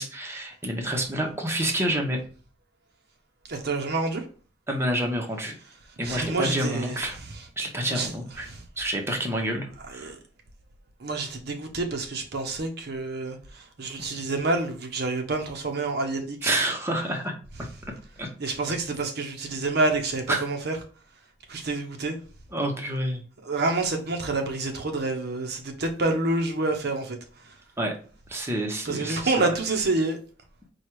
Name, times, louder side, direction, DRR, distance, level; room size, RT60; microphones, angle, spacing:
voice 1, 0.0-2.2 4.7-5.5 6.0-7.2 7.6-8.5 8.8-10.1 16.4-17.3 18.2-18.3 20.3-20.5 22.5-23.2 27.8-27.9 28.3-29.5, right 1 dB, 15° right, 0.8 m, -28 dB
voice 2, 3.5-4.2 6.0-7.0 7.3-7.4 7.9-8.1 8.5-8.6 9.9-10.2 11.0-16.5 18.4-20.8 21.5-22.2 23.4-27.6 28.8-30.2, right 3 dB, 60° right, 0.7 m, -28 dB
4.6 x 2.3 x 4.5 m
head